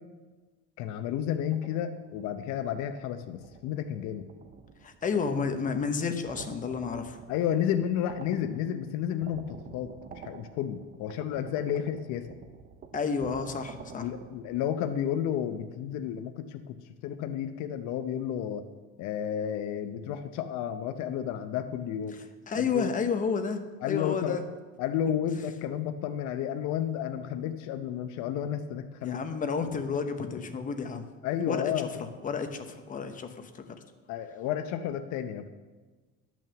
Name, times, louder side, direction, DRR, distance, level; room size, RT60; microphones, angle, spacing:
voice 1, 0.8-4.3 7.3-12.3 13.9-16.8 17.0-18.6 19.0-22.2 22.5-22.9 23.8-24.4 24.8-29.2 31.2-31.9 34.1-35.5, left 9 dB, 65° left, 8 dB, 0.7 m, -32 dB
sound 1, 1.5-14.6, right 7 dB, 30° right, 0.6 m, -50 dB
voice 2, 4.8-7.2 12.9-14.1 22.5-24.4 29.0-31.1 31.5-33.8, left 5 dB, 25° left, 8 dB, 0.8 m, -31 dB
10.5 x 6.2 x 6.9 m, 1.3 s
cardioid pair, 145°, 31 cm